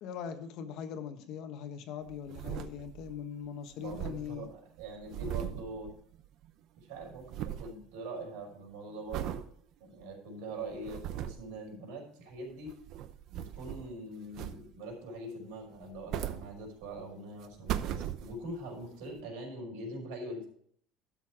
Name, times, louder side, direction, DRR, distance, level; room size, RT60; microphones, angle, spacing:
voice 1, 0.0-4.5 5.2-5.5, left 7 dB, 55° left, 8 dB, 1.3 m, -41 dB
sound 1, 2.1-3.2 3.4-3.5 3.7-6.5 6.8-7.8 8.2-8.5 9.1-9.5 10.0-10.1 10.6-11.5 12.5-14.0 14.3-14.9 15.8-17.0 17.4-18.6 19.2-19.3, right 11 dB, 50° right, 0.8 m, -39 dB
voice 2, 3.8-5.9 6.9-9.4 9.8-12.7 13.3-20.5, right 1 dB, 85° right, 0 dB, 5.3 m, -43 dB
12.5 x 6.8 x 4.8 m, 0.62 s
cardioid pair, 155°, 0 cm